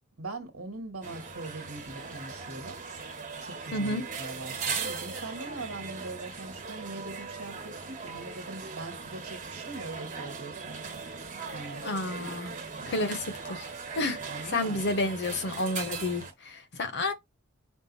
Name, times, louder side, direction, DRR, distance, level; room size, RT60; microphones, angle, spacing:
voice 1, 0.2-2.8 3.4-10.9 11.5-11.8 12.1-12.3 12.8-13.1 14.3-14.8, right 2 dB, 90° right, 1.5 m, -41 dB
sound 1, 1.0-16.3, right 5 dB, 35° right, 1.2 m, -39 dB
voice 2, 3.7-4.0 11.8-12.5 12.9-13.7 14.0-14.2 14.4-17.1, left 2 dB, 55° left, 0.8 m, -30 dB
5.4 x 2.4 x 4.1 m
head